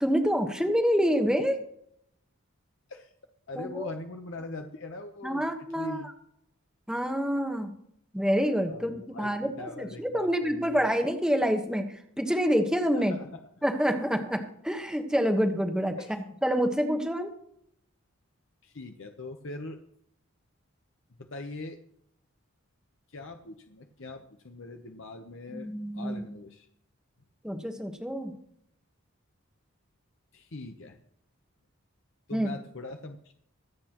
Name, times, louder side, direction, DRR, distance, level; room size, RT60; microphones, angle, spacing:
voice 1, 0.0-1.6 3.6-3.9 5.2-6.0 6.9-7.7 8.1-11.9 12.2-13.2 13.6-16.0 16.4-17.3 25.5-26.3 27.4-28.3 32.3-32.5, equal, 5° right, 5 dB, 1.2 m, -27 dB
voice 2, 3.5-5.4 5.7-6.1 8.7-10.9 12.9-13.4 16.0-16.2 18.6-19.8 21.2-21.8 23.1-26.7 30.3-31.0 32.3-33.3, left 2 dB, 60° left, 4 dB, 0.9 m, -41 dB
24.5 x 8.5 x 3.0 m, 0.70 s
head